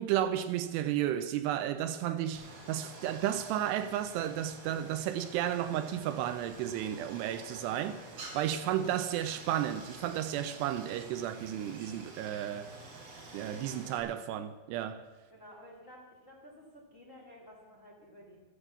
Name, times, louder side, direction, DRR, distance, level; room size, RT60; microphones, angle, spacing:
voice 1, 0.0-8.0 8.3-12.7 13.3-15.1, right 11 dB, 80° right, 2.6 m, -33 dB
Stream, 2.3-14.0, right 2 dB, 60° right, 4.9 m, -49 dB
voice 2, 13.5-14.0 15.3-18.4, equal, 25° left, 2.2 m, -53 dB
14.0 x 11.5 x 7.1 m
omnidirectional pair, 5.0 m